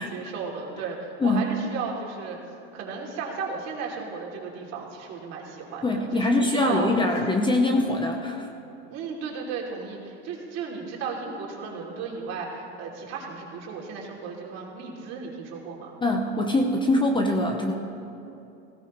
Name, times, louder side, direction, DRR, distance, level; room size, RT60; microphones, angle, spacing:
voice 1, 0.0-2.4 2.7-6.9 8.9-15.9, right 5 dB, 50° right, -2 dB, 3.0 m, -35 dB
voice 2, 5.8-8.5 16.0-17.7, left 2 dB, 15° left, 3 dB, 0.9 m, -23 dB
18.5 x 16.5 x 3.2 m, 2.8 s
supercardioid pair, 120°, 34 cm